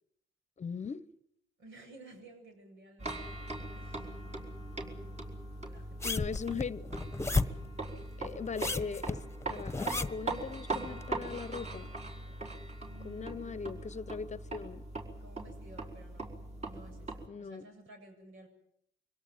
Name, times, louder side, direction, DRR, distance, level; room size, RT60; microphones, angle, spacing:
voice 1, 0.6-1.1 6.0-6.9 8.2-9.2 9.5-11.9 13.0-14.9 17.3-17.6, left 5 dB, 35° left, 0.9 m, -39 dB
voice 2, 1.6-4.4 5.6-6.6 12.9-13.9 15.1-16.3 16.6-18.5, right 2 dB, 80° right, 7.8 m, -55 dB
sound 1, 3.0-17.3, right 2 dB, 35° right, 4.6 m, -41 dB
sound 2, 6.0-7.7 8.5-10.3 11.0-11.1, left 3 dB, 15° left, 1.3 m, -33 dB
24.5 x 17.5 x 9.2 m
cardioid pair, 90°, 20 cm